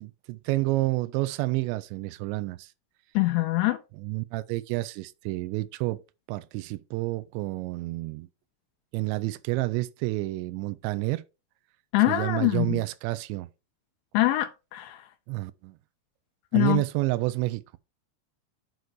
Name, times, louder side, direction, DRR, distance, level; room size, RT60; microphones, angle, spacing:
voice 1, 0.0-2.7 3.9-6.0 6.3-8.3 8.9-11.2 12.1-13.5 15.3-15.8 16.5-17.8, right 20 dB, 90° right, 2.5 m, -29 dB
voice 2, 3.2-3.8 11.9-12.8 14.1-15.0 16.5-16.8, left 18 dB, 85° left, 2.6 m, -24 dB
8.0 x 4.0 x 6.1 m
omnidirectional pair, 5.8 m